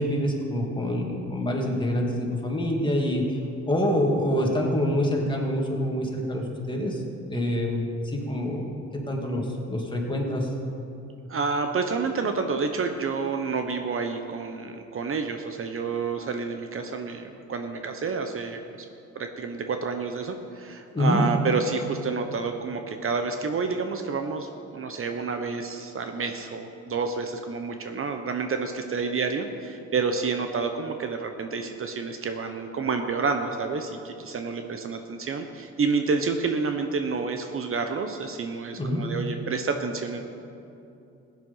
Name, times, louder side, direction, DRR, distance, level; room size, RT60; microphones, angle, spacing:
voice 1, 0.0-3.4 3.7-7.0 7.3-10.5 20.9-21.2 38.8-39.1, left 1 dB, 15° left, -1 dB, 2.5 m, -26 dB
voice 2, 11.3-18.8 19.1-40.2, right 4 dB, 45° right, 6 dB, 0.9 m, -29 dB
15.5 x 9.3 x 5.6 m, 2.7 s
cardioid pair, 90°, 30 cm